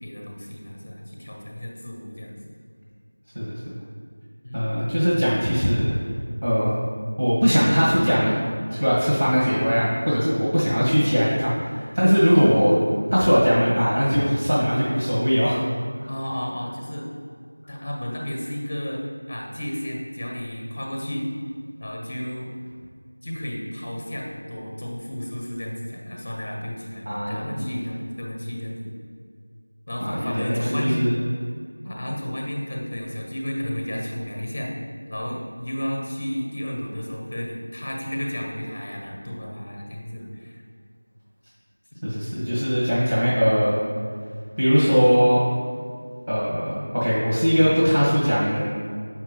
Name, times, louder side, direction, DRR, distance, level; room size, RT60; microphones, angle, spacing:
voice 1, 0.0-2.4 4.4-4.7 10.4-10.7 16.1-17.1 17.7-21.3 21.8-22.5 23.2-28.9 29.9-31.0 31.8-34.7 35.1-40.6, equal, 20° left, -1 dB, 0.7 m, -32 dB
voice 2, 4.5-6.0 6.4-6.8 7.2-8.4 8.7-12.8 13.1-15.6 27.1-27.7 30.0-31.2 42.0-43.8 44.6-45.4 46.3-48.6, equal, 85° right, -6 dB, 1.7 m, -20 dB
6.8 x 5.8 x 3.2 m, 2.1 s
figure-of-eight pair, 175°, 0 cm